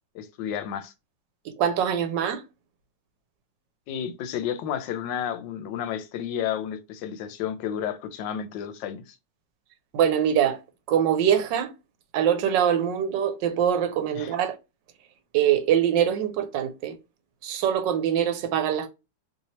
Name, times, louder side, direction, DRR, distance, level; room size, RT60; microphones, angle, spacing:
voice 1, 0.1-0.9 3.9-9.1 14.1-14.3, left 9 dB, 90° left, 1.3 m, -31 dB
voice 2, 1.4-2.4 9.9-10.6 10.9-11.7 12.1-14.6 15.3-16.9 17.4-18.9, right 9 dB, 85° right, 1.3 m, -23 dB
3.2 x 2.8 x 2.8 m
omnidirectional pair, 1.9 m